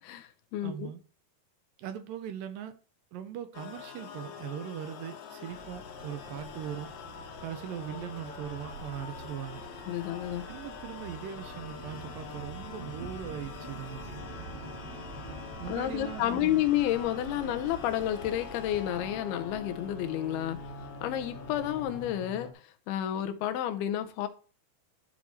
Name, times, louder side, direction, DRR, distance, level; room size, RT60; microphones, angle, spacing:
voice 1, 0.0-0.9 9.9-10.5 15.7-20.6 21.0-24.3, left 12 dB, 90° left, 2.8 m, -31 dB
voice 2, 0.6-1.0 1.8-2.7 3.1-6.9 7.4-9.6 10.5-14.2 15.6-16.6, right 9 dB, 75° right, 2.2 m, -40 dB
sound 1, 3.5-22.5, left 7 dB, 65° left, 2.0 m, -45 dB
sound 2, 5.5-22.1, right 5 dB, 55° right, 2.7 m, -50 dB
sound 3, 6.8-19.2, right 2 dB, 30° right, 0.9 m, -48 dB
11.5 x 4.6 x 4.2 m
omnidirectional pair, 4.3 m